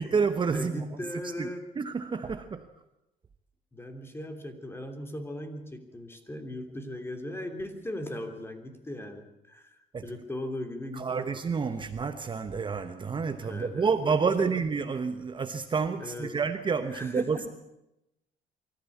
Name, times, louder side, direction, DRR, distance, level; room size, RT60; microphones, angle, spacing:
voice 1, 0.0-0.9 1.4-1.5 1.7-2.7 9.9-10.1 10.9-17.5, right 5 dB, 30° right, 9 dB, 1.1 m, -29 dB
voice 2, 0.5-1.6 3.7-9.7 10.0-11.3 13.4-13.9 16.0-16.3 16.9-17.3, left 1 dB, 15° left, 6 dB, 3.2 m, -38 dB
24.0 x 14.5 x 8.6 m, 0.91 s
cardioid pair, 110°, 17 cm